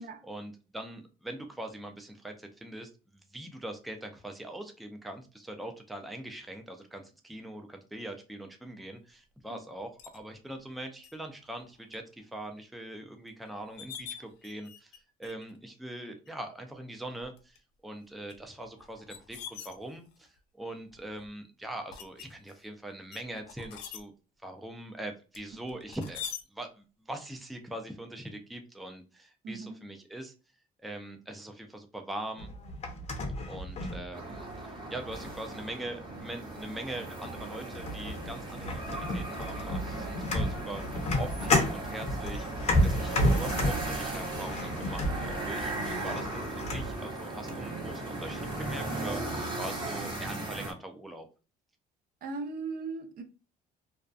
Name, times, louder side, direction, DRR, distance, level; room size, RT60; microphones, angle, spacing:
voice 1, 0.0-24.1 24.4-26.2 26.5-30.3 30.8-32.5 33.5-42.5 42.8-49.2 49.6-51.3, right 1 dB, ahead, 0.4 m, -42 dB
sound 1, 10.0-10.2 11.0-11.1 11.6-12.0 12.4-12.5 13.3-13.4 13.6-15.0 15.2-15.6 16.3-16.4 17.2-17.6 18.3-20.3 20.9-21.3 21.9-22.6 23.1-24.0 25.3-26.4, left 8 dB, 90° left, 0.4 m, -44 dB
voice 2, 29.4-29.8 34.3-34.4 39.9-40.1 52.2-53.2, right 4 dB, 60° right, 0.5 m, -38 dB
sound 2, 32.4-34.6 35.1-35.5 36.6-36.7 37.2-37.4 37.7-46.9, left 1 dB, 40° left, 0.7 m, -31 dB
sound 3, 34.1-50.7, right 2 dB, 30° right, 0.9 m, -37 dB
2.5 x 2.2 x 2.3 m
cardioid pair, 110°, 17 cm